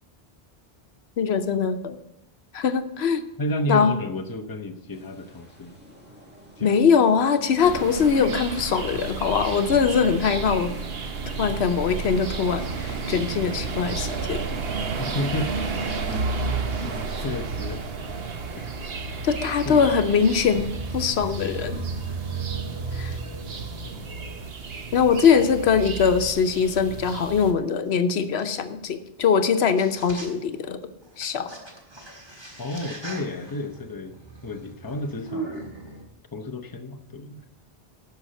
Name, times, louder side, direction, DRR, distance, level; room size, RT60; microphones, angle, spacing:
voice 1, 1.2-2.0 2.5-3.2 3.7-4.0 6.6-10.7 11.4-14.4 19.2-20.7 20.9-21.8 22.9-23.2 24.9-30.8 31.2-31.5, left 6 dB, 90° left, 9 dB, 1.0 m, -22 dB
voice 2, 3.4-5.8 6.6-6.7 15.0-15.6 16.8-17.0 17.2-17.9 18.6-18.7 19.6-19.9 23.8-24.1 32.6-34.1 34.4-35.6 36.3-37.5, left 1 dB, 20° left, 6 dB, 0.8 m, -31 dB
sound 1, 4.9-20.7, equal, 10° right, 2.0 m, -45 dB
sound 2, 7.6-27.5, right 4 dB, 70° right, 1.2 m, -32 dB
sound 3, 20.5-24.5 25.3-25.4 26.2-26.4 28.4-28.5 29.5-29.6 29.8-30.6 31.0-36.0, right 4 dB, 25° right, 1.8 m, -36 dB
11.5 x 5.6 x 7.5 m, 0.88 s
omnidirectional pair, 1.1 m